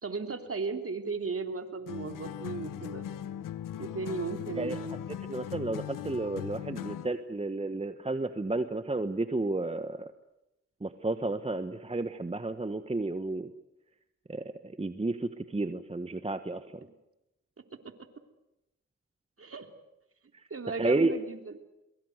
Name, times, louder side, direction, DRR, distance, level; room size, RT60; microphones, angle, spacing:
voice 1, 0.0-3.0 3.8-5.0 19.4-19.7 20.5-21.6, right 4 dB, 45° right, 6 dB, 3.3 m, -36 dB
sound 1, 1.9-7.2, left 11 dB, 75° left, 1.0 m, -39 dB
voice 2, 5.3-10.1 10.8-13.5 14.3-14.4 14.8-16.6 20.7-21.1, right 2 dB, 20° right, 10 dB, 1.3 m, -31 dB
23.0 x 22.5 x 8.0 m, 0.92 s
supercardioid pair, 45°, 33 cm